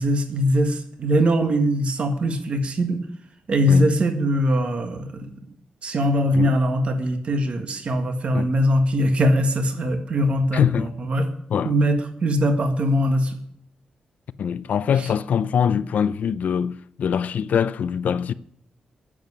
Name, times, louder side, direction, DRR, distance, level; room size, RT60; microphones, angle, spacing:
voice 1, 0.0-3.1 3.5-5.3 5.8-11.3 11.6-13.4 15.0-15.1, equal, 50° right, 1.8 m, -21 dB
voice 2, 10.5-10.9 11.5-11.8 14.4-18.3, left 7 dB, 70° left, 0.6 m, -23 dB
10.5 x 7.8 x 9.7 m
wide cardioid pair, 130°, 3 cm